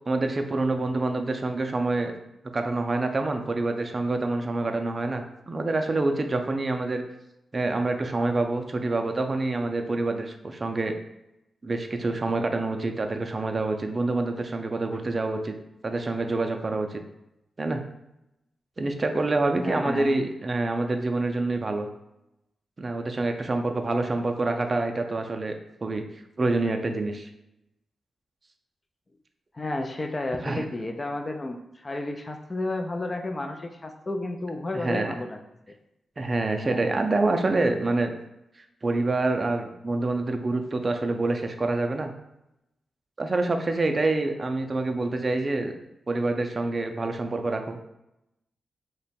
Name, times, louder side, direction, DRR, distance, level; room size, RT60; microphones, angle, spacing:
voice 1, 0.1-2.1 2.5-7.0 7.5-10.9 11.6-15.5 15.8-17.0 17.6-17.8 18.8-21.9 22.8-25.5 25.8-26.0 26.4-27.3 30.4-30.6 34.8-35.1 36.2-38.1 38.8-42.1 43.2-45.7 46.1-47.8, right 2 dB, 40° right, 5 dB, 0.4 m, -26 dB
voice 2, 19.6-20.1 23.9-24.1 29.5-35.4 35.7-35.8 36.6-36.9, left 2 dB, 30° left, 5 dB, 0.4 m, -32 dB
2.9 x 2.2 x 4.2 m, 0.87 s
cardioid pair, 70°, 0 cm